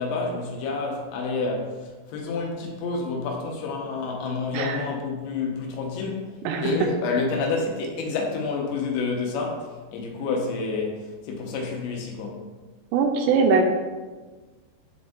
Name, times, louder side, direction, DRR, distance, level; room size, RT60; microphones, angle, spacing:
voice 1, 0.0-6.4 6.6-12.5, left 4 dB, 90° left, 0 dB, 3.2 m, -29 dB
voice 2, 12.9-13.7, right 4 dB, 85° right, 4 dB, 2.8 m, -21 dB
10.5 x 3.6 x 2.6 m, 1.3 s
omnidirectional pair, 4.9 m